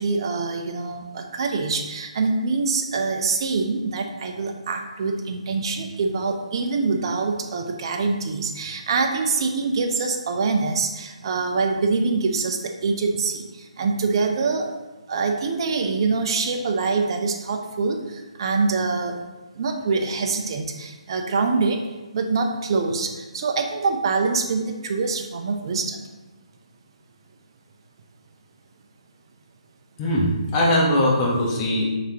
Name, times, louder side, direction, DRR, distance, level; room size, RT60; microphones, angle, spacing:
voice 1, 0.0-13.4 13.8-14.7 15.1-18.0 18.4-19.1 19.6-21.8 22.1-26.0, right 4 dB, 45° right, 4 dB, 0.6 m, -24 dB
voice 2, 30.0-31.8, left 1 dB, 25° left, -4 dB, 1.0 m, -20 dB
4.9 x 3.4 x 2.9 m, 1.2 s
figure-of-eight pair, 150°, 4 cm